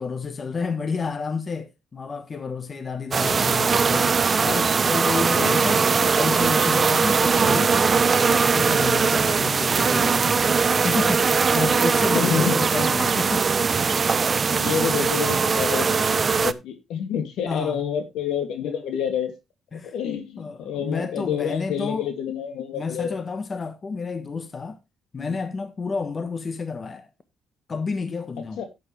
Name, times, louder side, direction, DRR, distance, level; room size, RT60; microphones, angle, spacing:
voice 1, 0.0-4.1 4.4-7.8 8.1-10.6 10.8-13.5 17.5-17.8 19.7-19.9 20.4-22.1 22.7-24.8 25.1-27.1 27.7-28.6, left 4 dB, 35° left, 1.3 m, -30 dB
sound 1, 3.1-16.5, right 5 dB, 40° right, 0.6 m, -20 dB
voice 2, 5.2-5.6 12.1-12.5 14.5-19.3 19.8-23.2 25.2-25.4 28.6-28.7, left 8 dB, 85° left, 2.7 m, -28 dB
11.5 x 8.5 x 3.4 m
cardioid pair, 90°, 0 cm